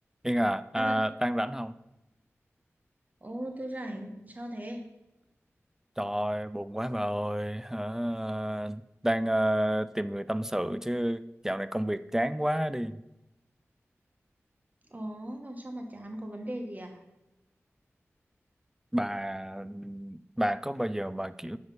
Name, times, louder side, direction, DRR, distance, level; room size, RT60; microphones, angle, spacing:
voice 1, 0.2-1.8 6.0-13.0 18.9-21.6, equal, 10° right, 14 dB, 0.4 m, -30 dB
voice 2, 3.2-4.8 14.9-17.0, right 1 dB, 35° right, 3 dB, 1.2 m, -38 dB
8.0 x 5.2 x 5.3 m, 0.94 s
wide cardioid pair, 55°, 5 cm